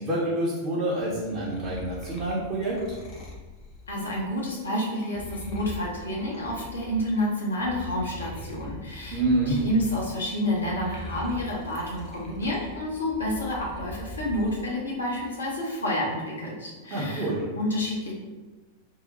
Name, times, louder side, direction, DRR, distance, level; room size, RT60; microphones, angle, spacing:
voice 1, 0.0-2.8 9.1-9.5 16.9-17.4, right 1 dB, 35° right, -7 dB, 0.8 m, -27 dB
sound 1, 1.0-7.2 7.6-14.6 15.0-15.6, left 2 dB, 35° left, 0.7 m, -42 dB
voice 2, 3.9-18.1, left 1 dB, 75° left, -4 dB, 0.8 m, -29 dB
2.8 x 2.1 x 4.0 m, 1.2 s
figure-of-eight pair, 90°, 0 cm